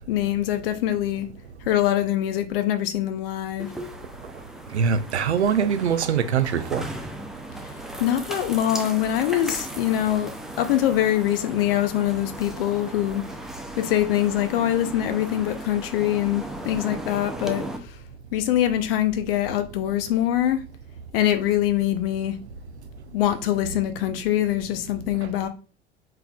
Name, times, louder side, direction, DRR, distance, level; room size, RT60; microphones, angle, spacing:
voice 1, 0.1-1.3 1.6-3.7 7.6-10.3 10.6-13.2 13.8-18.0 18.3-20.6 21.1-22.4 23.1-25.5, left 12 dB, 60° left, 0.7 m, -24 dB
sound 1, 3.6-17.8, right 1 dB, ahead, 0.5 m, -37 dB
voice 2, 4.7-6.9, right 7 dB, 85° right, 0.5 m, -23 dB
5.8 x 3.3 x 2.3 m
figure-of-eight pair, 75°, 33 cm